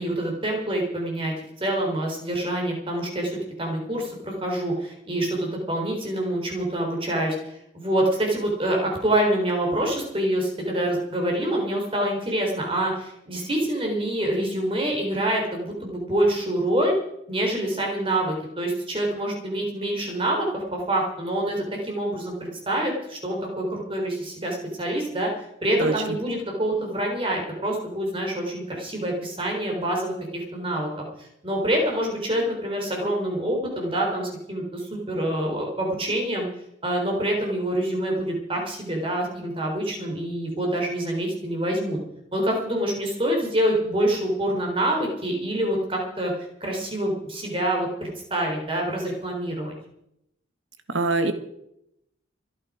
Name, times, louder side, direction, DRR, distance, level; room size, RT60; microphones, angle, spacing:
voice 1, 0.0-3.3 3.6-17.0 17.3-25.3 25.6-36.5 36.8-42.0 42.3-46.3 46.6-49.7, right 1 dB, 30° right, 0 dB, 3.7 m, -26 dB
voice 2, 50.9-51.3, right 3 dB, 90° right, 9 dB, 1.6 m, -22 dB
26.0 x 8.9 x 5.0 m, 0.82 s
head